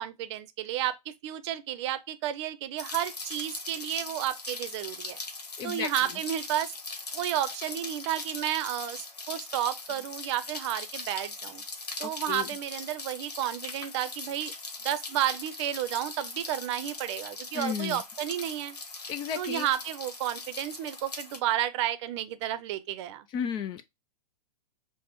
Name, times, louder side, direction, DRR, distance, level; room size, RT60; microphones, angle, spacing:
voice 1, 0.0-5.2 5.6-6.7 7.1-11.6 12.0-14.5 14.8-18.8 19.4-23.3, right 12 dB, 45° right, 0.6 m, -32 dB
Rain, 2.8-21.4, left 3 dB, 90° left, 0.9 m, -40 dB
voice 2, 5.6-5.9 12.0-12.5 17.5-18.0 19.1-19.7 23.3-23.8, left 7 dB, 25° left, 0.3 m, -33 dB
5.9 x 2.1 x 2.9 m
hypercardioid pair, 110°, 20 cm